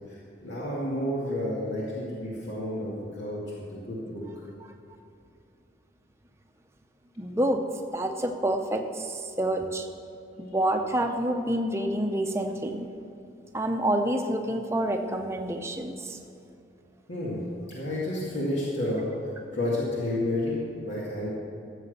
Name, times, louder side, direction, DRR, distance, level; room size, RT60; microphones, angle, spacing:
voice 1, 0.4-4.4 17.1-17.4 17.7-21.3, left 1 dB, 80° left, -6 dB, 2.3 m, -31 dB
voice 2, 7.2-7.6 7.9-9.9 10.4-12.9 13.5-16.2, right 1 dB, 15° right, 4 dB, 0.7 m, -28 dB
14.0 x 7.4 x 6.7 m, 2.6 s
head